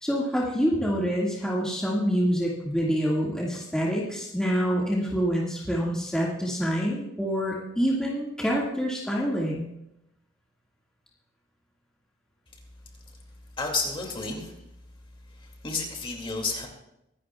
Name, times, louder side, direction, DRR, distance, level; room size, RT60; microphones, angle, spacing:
voice 1, 0.0-9.7, equal, 5° left, -5 dB, 1.9 m, -26 dB
voice 2, 13.6-14.6 15.3-16.7, left 3 dB, 25° left, 1 dB, 2.4 m, -31 dB
24.0 x 11.5 x 2.4 m, 0.84 s
head